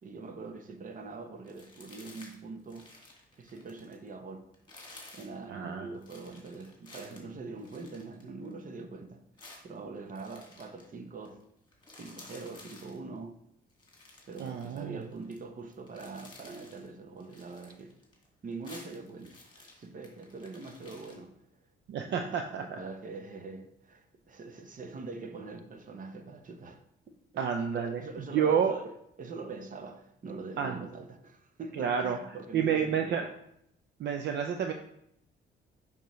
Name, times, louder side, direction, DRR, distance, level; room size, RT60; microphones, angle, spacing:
voice 1, 0.0-2.9 3.4-4.5 5.1-11.4 11.9-13.4 14.3-18.0 18.4-21.4 22.0-26.8 27.7-33.3, right 3 dB, 40° right, 0.9 m, -43 dB
sound 1, 1.4-2.4 2.6-4.1 4.5-5.3 6.0-8.6 9.4-10.9 11.2-11.4 11.7-13.0 13.7-15.4 15.7-16.9 17.2-18.3 18.5-21.2, left 2 dB, 25° left, 2.0 m, -53 dB
voice 2, 5.5-5.9 14.4-15.0 21.9-22.8 27.4-28.0 28.3-28.7 30.6-30.8 31.8-32.2 32.5-33.2 34.0-34.7, right 7 dB, 60° right, 0.5 m, -29 dB
6.8 x 5.3 x 3.1 m
cardioid pair, 90°, 20 cm